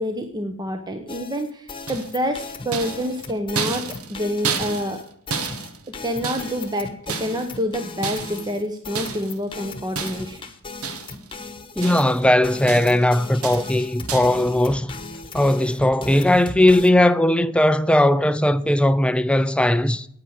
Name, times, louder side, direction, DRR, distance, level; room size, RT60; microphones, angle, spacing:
voice 1, 0.0-3.8 4.1-5.0 6.0-6.9 7.2-10.4, equal, 20° right, 0.9 m, -27 dB
sound 1, 1.1-16.9, left 3 dB, 25° left, 1.2 m, -37 dB
sound 2, 1.9-2.3 2.7-5.0 5.3-6.7 7.1-7.6 8.0-8.5 8.9-9.4 10.0-10.4 10.8-11.3 11.6-12.3 12.7-13.1 13.4-13.8 14.1-14.4, right 5 dB, 75° right, 1.3 m, -31 dB
voice 2, 11.8-14.9 15.3-20.1, left 1 dB, 5° left, 0.5 m, -18 dB
9.5 x 9.0 x 6.3 m
head